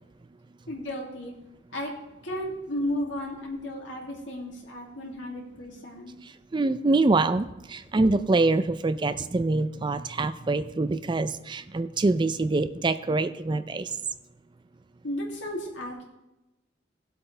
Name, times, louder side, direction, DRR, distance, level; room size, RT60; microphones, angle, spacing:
voice 1, 0.7-1.3 1.7-1.9 2.2-6.1 15.0-16.1, left 1 dB, 80° left, -1 dB, 2.6 m, -34 dB
voice 2, 6.5-13.9, right 3 dB, 25° right, 12 dB, 0.4 m, -25 dB
18.0 x 8.1 x 3.3 m, 0.96 s
head